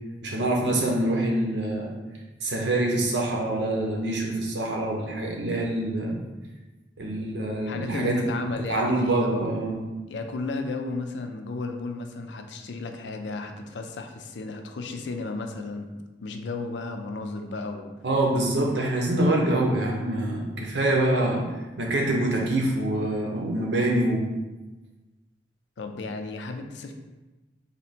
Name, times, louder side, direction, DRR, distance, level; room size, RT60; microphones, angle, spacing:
voice 1, 0.2-1.9 2.4-6.2 7.0-8.3 8.7-9.9 18.0-21.4 21.8-24.3, right 1 dB, 75° right, -1 dB, 0.8 m, -25 dB
voice 2, 7.7-9.5 10.1-15.9 16.2-17.9 25.8-26.9, left 3 dB, 75° left, 5 dB, 0.4 m, -33 dB
3.3 x 2.8 x 4.2 m, 1.1 s
head